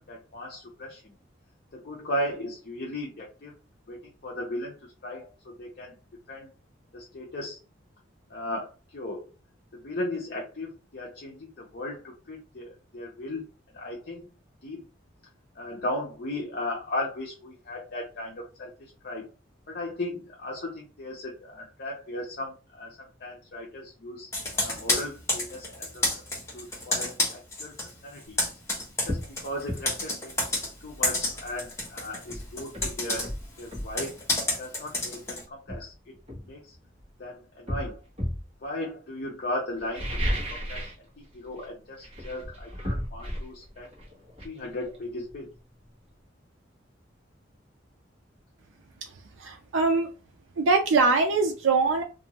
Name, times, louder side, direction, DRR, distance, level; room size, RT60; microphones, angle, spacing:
voice 1, 0.1-1.1 1.7-3.5 3.9-4.7 5.0-6.0 6.3-6.5 6.9-7.6 8.3-9.3 9.7-13.4 13.7-14.3 14.6-14.8 15.5-19.3 19.7-26.1 26.5-28.4 29.0-30.6 30.8-33.3 33.6-34.2 34.6-36.1 36.4-36.7 37.2-38.0 38.6-40.1 40.5-40.9 41.2-43.9 44.4-45.5, left 1 dB, 50° left, -3 dB, 0.6 m, -36 dB
Computer keyboard, 24.3-27.9 28.2-35.4, left 2 dB, 15° left, 1.0 m, -30 dB
sound 1, 28.3-28.5 29.1-29.3 29.7-29.9 31.8-31.9 32.3-33.9 35.0-35.2 35.7-37.1 37.7-38.5 39.8-41.0 41.3-41.7 42.0-45.6 45.8-45.9, equal, 30° right, 1.3 m, -33 dB
voice 2, 49.4-50.1 50.6-52.0, right 4 dB, 80° right, 3 dB, 0.4 m, -22 dB
2.6 x 2.5 x 2.9 m, 0.33 s
head